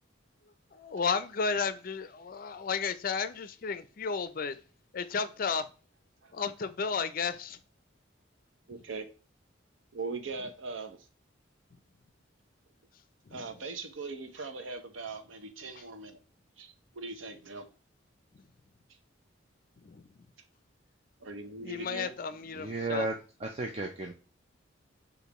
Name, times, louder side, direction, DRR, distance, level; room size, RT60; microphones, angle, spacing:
voice 1, 0.7-4.6 4.9-5.7 6.3-7.6 8.7-8.8 13.2-13.6 15.7-15.9 18.3-18.5 19.8-20.2 21.6-23.1, left 5 dB, 45° left, 0.4 m, -33 dB
voice 2, 8.7-9.1 9.9-11.0 13.3-16.2 16.6-17.6 21.2-22.1, right 3 dB, 90° right, 0.8 m, -40 dB
voice 3, 22.6-23.1 23.4-24.1, right 2 dB, 35° right, 0.5 m, -33 dB
6.6 x 2.6 x 2.9 m
head